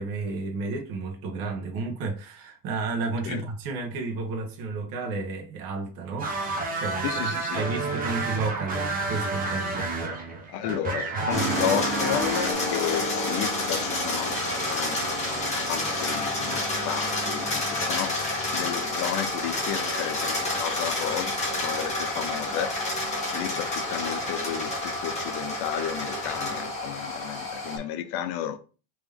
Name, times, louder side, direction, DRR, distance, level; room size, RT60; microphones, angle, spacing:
voice 1, 0.0-6.3 6.7-9.9, right 3 dB, 45° right, 1.1 m, -32 dB
sound 1, 6.2-12.5, right 3 dB, 20° right, 0.6 m, -30 dB
voice 2, 7.0-7.7 10.5-15.0 15.7-22.8 23.3-28.6, left 10 dB, 55° left, 0.5 m, -32 dB
sound 2, 11.3-27.8, left 2 dB, 15° left, 1.0 m, -29 dB
3.5 x 3.0 x 3.5 m
cardioid pair, 165°, 47 cm